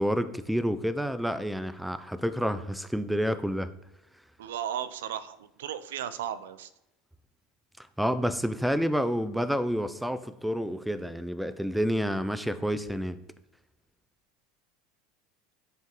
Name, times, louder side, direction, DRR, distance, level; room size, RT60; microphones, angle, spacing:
voice 1, 0.0-3.7 8.0-13.2, equal, ahead, 12 dB, 0.4 m, -29 dB
voice 2, 4.4-6.7, right 10 dB, 90° right, 14 dB, 0.4 m, -35 dB
8.9 x 3.6 x 3.0 m, 0.91 s
supercardioid pair, 120°, 0 cm